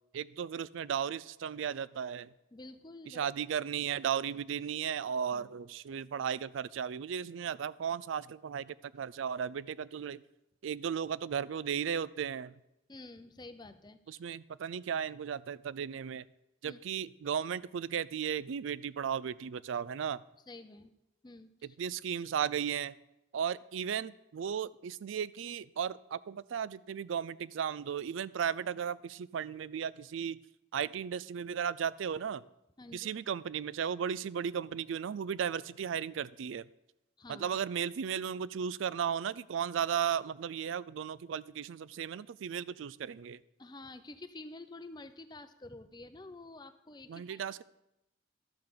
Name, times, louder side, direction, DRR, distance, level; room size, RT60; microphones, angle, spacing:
voice 1, 0.1-2.3 3.1-10.2 10.6-12.5 14.1-16.2 16.6-20.2 21.8-23.0 23.3-30.4 30.7-32.5 32.9-36.7 37.3-43.4 47.1-47.6, right 8 dB, 75° right, 18 dB, 0.4 m, -35 dB
voice 2, 2.5-3.3 5.3-5.5 12.9-14.2 16.7-16.8 20.5-20.9 21.2-21.8 32.8-33.1 37.2-37.6 43.6-47.6, left 2 dB, 20° left, 10 dB, 0.5 m, -49 dB
12.5 x 5.8 x 6.8 m, 0.88 s
head